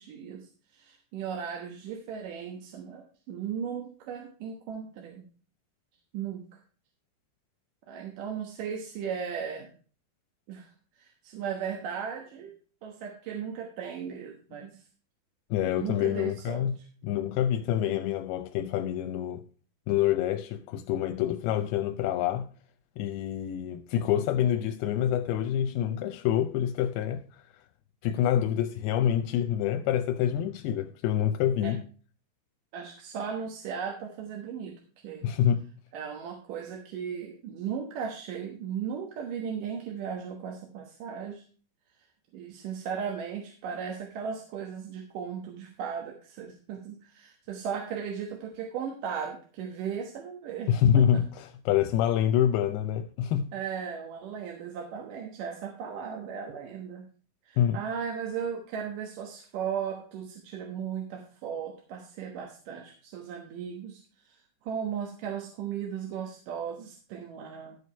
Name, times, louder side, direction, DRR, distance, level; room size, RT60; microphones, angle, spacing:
voice 1, 0.0-5.3 6.1-6.4 7.9-9.7 10.5-10.7 11.0-12.5 12.8-14.8 15.6-16.7 31.6-31.7 32.7-34.7 35.0-35.2 35.9-41.4 42.3-51.0 53.5-57.1 57.5-67.8, right 7 dB, 65° right, 2.6 m, -36 dB
voice 2, 15.5-19.4 19.9-22.5 23.0-27.4 28.0-31.8 35.2-35.7 50.7-53.5 57.6-57.8, left 10 dB, 85° left, 2.6 m, -27 dB
13.5 x 4.9 x 5.5 m
omnidirectional pair, 4.4 m